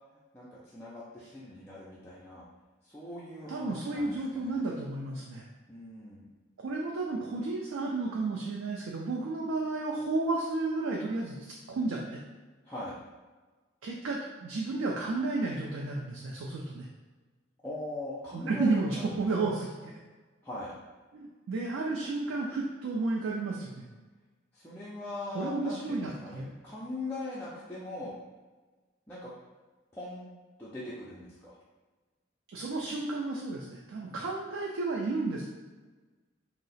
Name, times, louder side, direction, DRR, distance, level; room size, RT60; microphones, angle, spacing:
voice 1, 0.3-2.4 2.8-4.5 5.7-6.3 12.6-12.9 17.6-19.5 20.4-20.7 24.5-28.2 29.1-29.3 29.9-30.3 30.6-31.5, left 2 dB, 10° left, -9 dB, 0.4 m, -41 dB
voice 2, 3.5-5.4 6.6-12.2 13.8-16.9 18.3-19.7 21.1-23.8 25.3-26.5 32.5-35.5, right 3 dB, 90° right, -2 dB, 0.4 m, -32 dB
2.7 x 2.0 x 4.0 m, 1.3 s
head